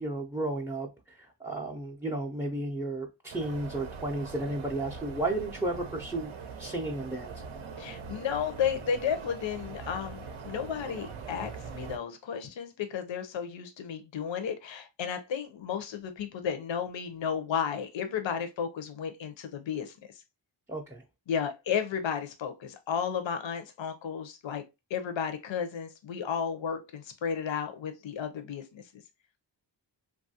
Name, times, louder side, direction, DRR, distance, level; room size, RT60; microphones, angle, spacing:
voice 1, 0.0-6.3 6.6-7.3 20.7-21.0, right 2 dB, 5° right, 0.4 m, -33 dB
sound 1, 3.3-12.0, right 5 dB, 85° right, 0.6 m, -42 dB
voice 2, 7.8-20.2 21.3-24.6 24.9-29.0, left 7 dB, 75° left, 0.6 m, -33 dB
3.0 x 2.3 x 2.7 m
wide cardioid pair, 70°, 46 cm